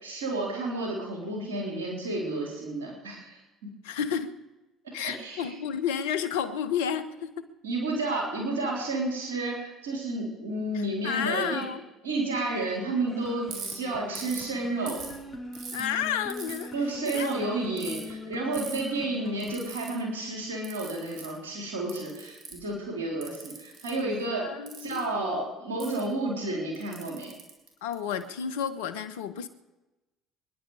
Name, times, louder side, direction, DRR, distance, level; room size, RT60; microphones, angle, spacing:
voice 1, 0.0-3.4 5.0-5.5 7.6-11.7 12.0-15.0 16.7-24.5 24.8-27.3, right 2 dB, 90° right, 4.1 m, -31 dB
voice 2, 3.8-4.4 4.9-7.5 10.7-11.8 15.7-16.7 17.1-17.3 24.4-25.1 27.8-29.5, left 8 dB, 80° left, 1.1 m, -31 dB
sound 1, 13.1-19.7, left 3 dB, 30° left, 4.6 m, -42 dB
Ratchet pawl, 13.5-13.7 14.2-14.5 14.9-15.8 16.3-16.6 17.1-17.3 17.8-18.0 18.5-18.8 19.4-19.9 20.6-21.3 21.9-22.7 23.2-23.9 24.7-25.0 25.8-26.0 26.7-28.2, right 5 dB, 65° right, 4.3 m, -40 dB
26.0 x 11.0 x 5.0 m
hypercardioid pair, 65°, 0 cm